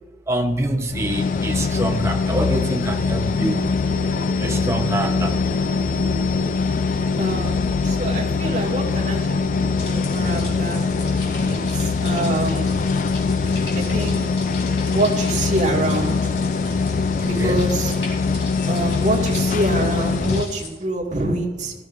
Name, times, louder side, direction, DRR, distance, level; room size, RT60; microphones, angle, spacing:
voice 1, 0.3-3.7 4.4-5.3 17.2-17.6, right 1 dB, 15° right, 3 dB, 1.0 m, -25 dB
sound 1, 0.9-20.4, left 4 dB, 45° left, 0.4 m, -22 dB
sound 2, 3.9-11.6, right 2 dB, 70° right, 0.6 m, -38 dB
voice 2, 7.2-10.8 11.4-12.8 13.7-14.3 14.9-16.4 17.3-18.0 18.6-21.7, right 2 dB, 45° right, -2 dB, 2.2 m, -26 dB
sound 3, 9.8-20.7, left 1 dB, 80° left, 4.0 m, -35 dB
18.0 x 13.5 x 2.7 m, 1.2 s
head